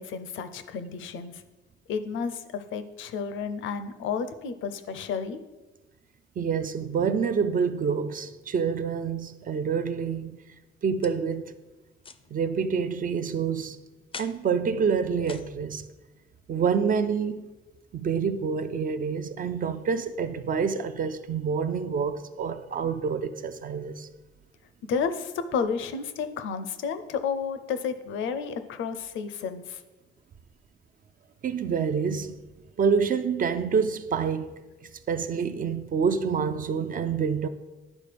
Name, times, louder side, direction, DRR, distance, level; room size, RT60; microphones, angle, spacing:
voice 1, 0.0-1.4 1.9-5.4 24.9-29.8, left 6 dB, 75° left, 0.6 m, -31 dB
voice 2, 6.4-10.4 10.8-11.4 12.3-13.8 14.2-15.9 16.5-17.5 17.9-24.1 31.4-32.3 32.8-34.6 35.1-37.5, right 6 dB, 45° right, 0.4 m, -27 dB
sound 1, 11.0-11.4 12.0-12.3 14.1-14.4 15.2-15.5, left 5 dB, 25° left, 0.4 m, -42 dB
11.0 x 4.1 x 3.4 m
cardioid pair, 90°, 20 cm